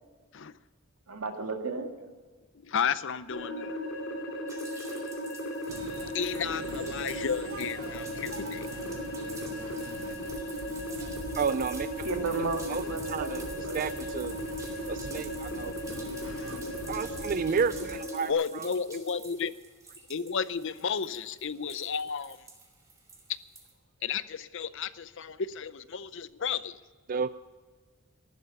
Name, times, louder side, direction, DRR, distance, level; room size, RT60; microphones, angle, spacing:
voice 1, 1.1-2.1 12.0-13.8, right 3 dB, 90° right, 4 dB, 2.0 m, -34 dB
voice 2, 2.6-3.8 6.1-8.7 15.5-17.0 17.4-17.5 18.3-19.5 20.1-22.4 24.0-26.8, left 6 dB, 60° left, 16 dB, 0.6 m, -33 dB
sound 1, 3.3-18.3, equal, 80° left, 2.5 m, -36 dB
sound 2, 4.5-23.7, right 3 dB, 15° right, 2.4 m, -49 dB
sound 3, 5.7-18.0, right 1 dB, 70° right, 1.4 m, -44 dB
voice 3, 11.4-11.9 12.7-14.3 14.9-15.7 16.9-18.7 27.1-27.3, right 6 dB, 40° right, 14 dB, 0.3 m, -31 dB
14.5 x 11.5 x 6.8 m, 1.4 s
head